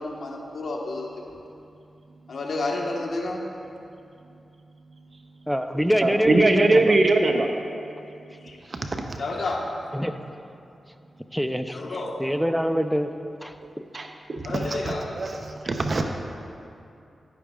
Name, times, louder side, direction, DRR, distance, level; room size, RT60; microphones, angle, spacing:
voice 1, 0.0-1.4 2.3-3.4 8.4-8.6 9.2-9.7 11.7-12.2 14.4-15.1, left 2 dB, 70° left, -1 dB, 1.2 m, -30 dB
voice 2, 5.5-7.0 9.9-10.2 11.3-11.8 12.2-13.1 13.4-13.6 15.6-15.7, equal, ahead, 8 dB, 0.5 m, -24 dB
voice 3, 6.0-7.5 8.7-9.0 13.9-16.0, right 2 dB, 50° right, 4 dB, 0.6 m, -22 dB
11.0 x 10.0 x 2.4 m, 2.6 s
cardioid pair, 55°, 0 cm